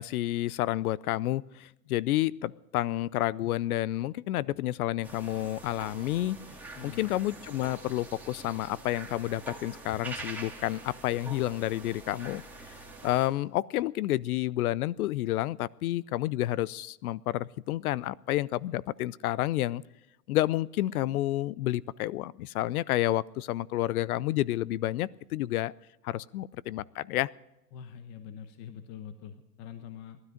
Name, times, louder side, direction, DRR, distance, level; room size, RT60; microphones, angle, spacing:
voice 1, 0.0-6.4 6.8-12.4 13.0-19.8 20.3-25.7 26.0-27.3, left 15 dB, 60° left, 23 dB, 0.6 m, -30 dB
sound 1, 5.0-13.3, right 3 dB, 5° right, 1.9 m, -45 dB
voice 2, 6.7-7.1 18.7-18.8 27.7-30.2, left 8 dB, 35° left, 9 dB, 1.0 m, -44 dB
19.0 x 12.5 x 5.1 m, 0.94 s
hypercardioid pair, 135°, 49 cm